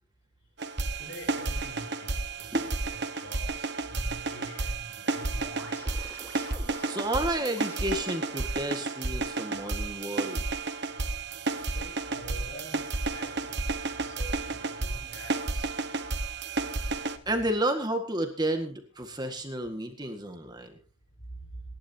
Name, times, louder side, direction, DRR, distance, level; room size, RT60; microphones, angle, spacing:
sound 1, 0.6-17.2, right 3 dB, 50° right, 1.4 m, -32 dB
voice 1, 1.0-2.5 2.9-5.7 11.6-12.8 13.1-13.6 14.0-15.7 21.3-21.6, right 1 dB, 60° left, 3 dB, 6.7 m, -45 dB
voice 2, 2.5-2.8 6.9-10.4 17.3-20.8, right 1 dB, 20° right, 5 dB, 1.8 m, -31 dB
sound 2, 5.4-10.4, left 1 dB, 10° left, 7.5 m, -49 dB
28.0 x 11.5 x 2.9 m, 0.36 s
head